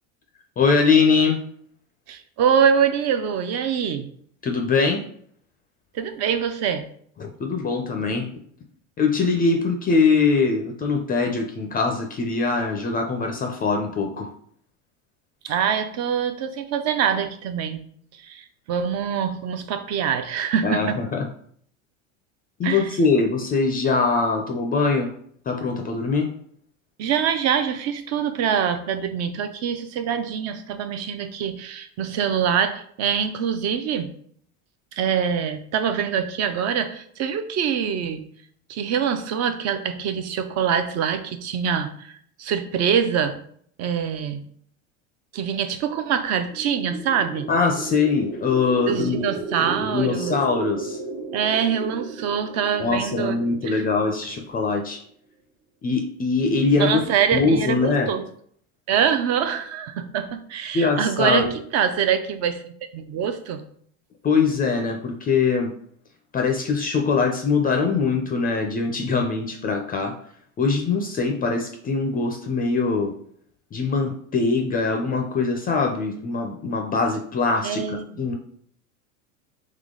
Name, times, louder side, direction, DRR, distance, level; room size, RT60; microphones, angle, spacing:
voice 1, 0.6-1.4 4.4-5.0 7.2-8.3 9.0-14.3 20.6-21.3 22.6-25.1 25.5-26.3 47.5-49.2 49.8-51.0 52.8-55.0 55.8-57.1 57.3-58.1 60.7-61.5 64.2-65.7 66.3-70.2 70.6-73.1 73.7-78.3, left 4 dB, 20° left, 4 dB, 0.5 m, -22 dB
voice 2, 2.1-4.1 5.9-6.9 15.4-17.8 18.1-21.0 22.6-22.9 27.0-34.1 34.9-38.2 38.7-43.4 43.8-44.4 45.3-47.5 48.9-50.4 51.3-53.4 53.6-53.8 56.8-58.3 58.9-62.6 62.9-63.6 77.6-78.1, right 7 dB, 40° right, 9 dB, 0.6 m, -24 dB
sound 1, 46.4-54.5, right 4 dB, 55° right, 1.2 m, -34 dB
3.7 x 3.2 x 3.7 m, 0.63 s
supercardioid pair, 105°, 40 cm